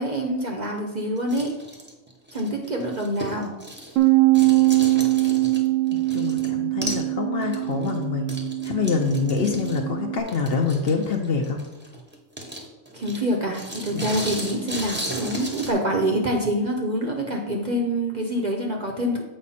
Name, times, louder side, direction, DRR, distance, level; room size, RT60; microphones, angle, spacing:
voice 1, 0.0-1.5 2.3-3.5 12.9-19.2, equal, 40° right, 1 dB, 0.7 m, -26 dB
sound 1, 1.2-4.1 4.3-6.5 6.8-7.1 7.4-15.7, equal, 10° right, 0.8 m, -35 dB
Bass guitar, 4.0-10.2, right 19 dB, 70° right, 1.0 m, -22 dB
voice 2, 5.9-11.6 13.9-14.1, left 5 dB, 55° left, 3 dB, 0.9 m, -26 dB
7.7 x 4.8 x 4.2 m, 1.0 s
omnidirectional pair, 1.4 m